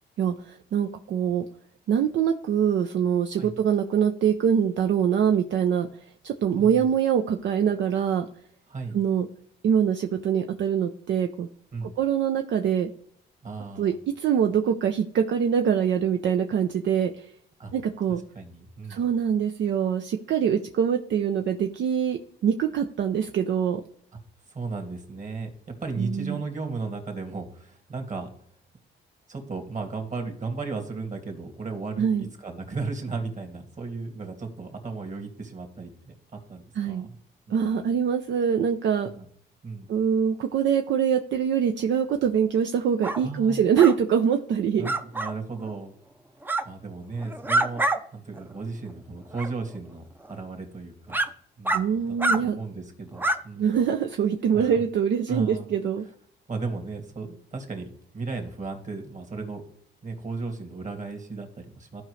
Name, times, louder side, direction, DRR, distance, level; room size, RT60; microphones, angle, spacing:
voice 1, 0.2-1.4 1.9-5.9 6.2-8.3 8.9-9.3 9.6-11.5 11.8-12.9 13.8-17.3 17.7-18.2 18.9-23.8 26.0-26.3 32.0-32.3 36.7-37.1 37.5-39.1 39.9-44.9 51.7-52.6 53.6-56.0, right 8 dB, 65° right, 5 dB, 0.6 m, -24 dB
voice 2, 6.5-6.8 8.7-9.0 11.7-11.9 13.4-13.9 17.6-17.7 18.3-19.1 24.5-28.3 29.3-37.2 37.5-38.0 39.0-39.3 39.6-39.9 43.2-43.6 44.8-45.9 46.6-47.8 48.1-51.2 51.6-53.8 54.5-54.8 55.3-55.7 56.5-59.6 60.0-62.0, right 4 dB, 40° right, 4 dB, 2.2 m, -35 dB
sound 1, 43.0-43.2 43.8-44.0 44.8-45.3 46.4-46.6 47.2-48.0 48.4-48.5 49.3-49.5 50.2-50.3 51.1-51.3 51.7-51.8 52.2-52.4 53.2-53.4, right 2 dB, 10° right, 0.6 m, -25 dB
14.5 x 5.1 x 3.2 m, 0.64 s
cardioid pair, 90°, 20 cm